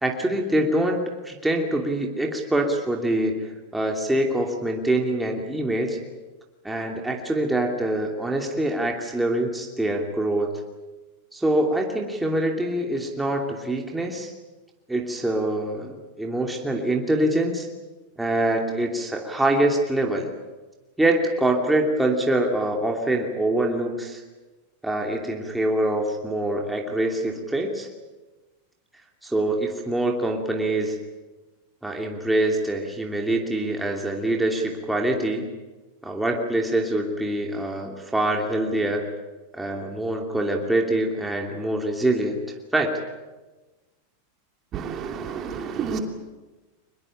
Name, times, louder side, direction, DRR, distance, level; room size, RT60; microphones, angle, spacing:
voice 1, 0.0-3.4 3.7-6.0 6.6-10.6 11.3-14.3 14.9-17.7 18.2-20.3 21.0-24.2 24.8-27.9 29.2-31.0 31.8-35.4 36.0-39.1 39.5-42.4 42.7-42.9, right 1 dB, 5° right, 1 dB, 2.8 m, -24 dB
voice 2, 44.7-46.0, right 7 dB, 30° right, 4 dB, 2.9 m, -30 dB
24.5 x 21.0 x 8.9 m, 1.2 s
supercardioid pair, 140°, 0 cm